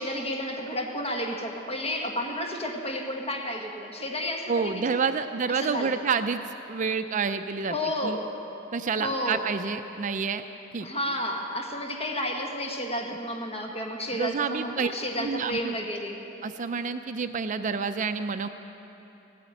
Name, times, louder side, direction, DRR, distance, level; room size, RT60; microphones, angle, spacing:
voice 1, 0.0-5.0 5.5-6.0 7.7-8.3 9.0-9.5 10.8-16.2, left 1 dB, 30° left, 1 dB, 1.6 m, -31 dB
voice 2, 4.5-6.4 6.7-7.7 8.0-8.2 8.7-10.4 10.7-10.9 14.1-14.9 15.1-15.7 16.4-18.5, right 5 dB, 40° right, 9 dB, 0.4 m, -28 dB
16.5 x 9.3 x 9.0 m, 3.0 s
head